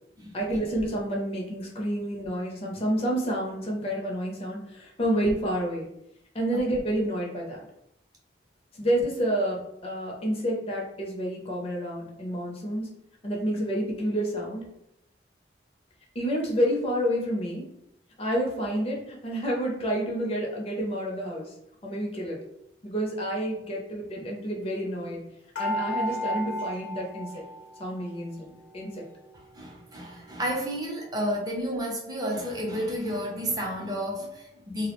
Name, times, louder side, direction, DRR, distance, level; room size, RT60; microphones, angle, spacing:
voice 1, 0.3-5.9 6.3-7.6 8.8-12.9 13.2-14.6 16.2-17.6 18.2-21.5 21.8-22.4 22.8-25.2 25.6-27.3 27.8-29.0, equal, 35° left, -2 dB, 0.5 m, -29 dB
sound 1, 25.6-28.1 28.4-29.4 29.9-30.0 30.2-30.4, equal, 80° left, 0.7 m, -34 dB
voice 2, 29.3-34.9, equal, 20° right, -2 dB, 0.5 m, -31 dB
2.3 x 2.0 x 2.9 m, 0.79 s
head